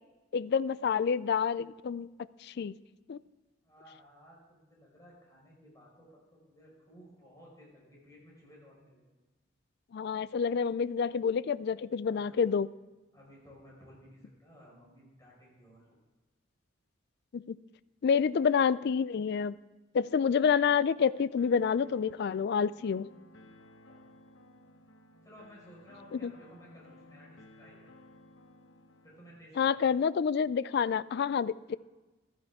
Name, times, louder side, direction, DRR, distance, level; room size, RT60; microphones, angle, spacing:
voice 1, 0.3-2.1 2.4-2.7 3.1-3.2 9.9-12.7 17.3-17.6 18.0-19.5 19.9-23.1 26.1-26.3 29.6-31.8, left 6 dB, 55° left, 18 dB, 0.3 m, -28 dB
voice 2, 3.6-9.0 12.0-12.4 13.1-15.8 23.9-24.3 25.2-27.8 28.0-28.1 29.0-29.8, equal, 15° left, -4 dB, 5.1 m, -56 dB
sound 1, 21.4-29.4, left 1 dB, 75° left, 0.9 m, -57 dB
15.0 x 13.0 x 3.6 m, 1.2 s
head